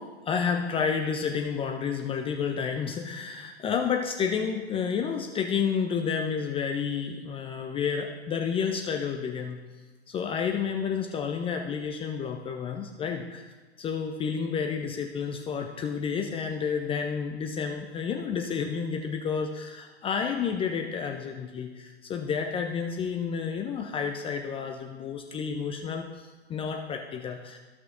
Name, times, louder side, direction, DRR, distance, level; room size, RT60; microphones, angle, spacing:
voice 1, 0.0-9.6 10.1-13.5 13.8-27.6, left 6 dB, 15° left, 3 dB, 0.5 m, -30 dB
14.5 x 6.0 x 2.6 m, 1.3 s
figure-of-eight pair, 100°, 34 cm